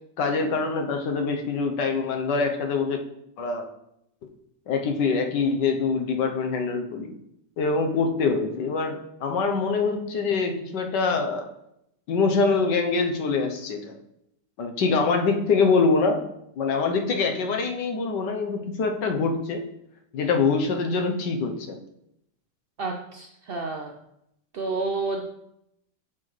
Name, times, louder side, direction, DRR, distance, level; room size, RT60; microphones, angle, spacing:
voice 1, 0.2-3.0 3.4-3.7 4.7-7.1 7.6-11.5 12.1-14.0 14.6-16.3 16.6-19.6 20.1-21.8, left 4 dB, 75° left, 4 dB, 1.5 m, -24 dB
voice 2, 22.8-23.9 24.5-25.2, right 3 dB, 70° right, 2 dB, 0.5 m, -30 dB
8.6 x 6.2 x 3.2 m, 0.79 s
omnidirectional pair, 1.9 m